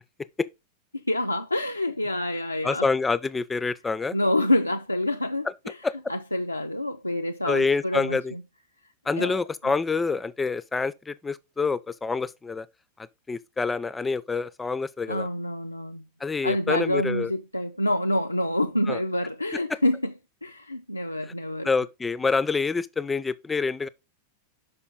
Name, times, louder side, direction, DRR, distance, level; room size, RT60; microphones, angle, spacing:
voice 1, 0.9-2.9 4.1-5.8 6.1-8.4 9.2-9.4 15.1-16.1 16.4-20.1 20.4-21.7, left 1 dB, 85° left, 0.3 m, -27 dB
voice 2, 2.6-4.2 5.8-5.9 7.4-8.3 9.1-12.7 13.0-15.3 16.2-17.3 18.9-19.0 19.5-19.8 21.6-23.9, left 4 dB, 10° left, 0.4 m, -27 dB
6.2 x 5.4 x 3.8 m
figure-of-eight pair, 90°, 0 cm